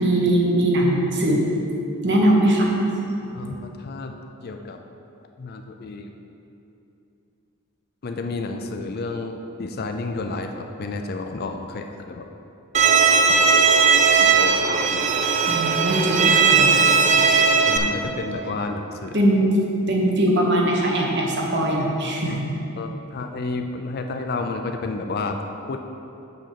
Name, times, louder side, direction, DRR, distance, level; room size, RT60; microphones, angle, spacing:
voice 1, 0.0-1.4 2.0-2.7 15.5-16.9 19.1-19.6 19.9-22.5, right 1 dB, 55° right, -1 dB, 1.3 m, -20 dB
voice 2, 3.3-4.1 4.4-4.8 5.4-6.1 8.0-12.3 14.0-15.1 17.7-19.2 22.2-22.4 22.8-25.4 25.7-25.8, left 3 dB, 45° left, 4 dB, 0.4 m, -31 dB
Bowed string instrument, 12.7-17.8, right 5 dB, 35° right, 0.5 m, -17 dB
6.2 x 5.6 x 6.7 m, 2.8 s
head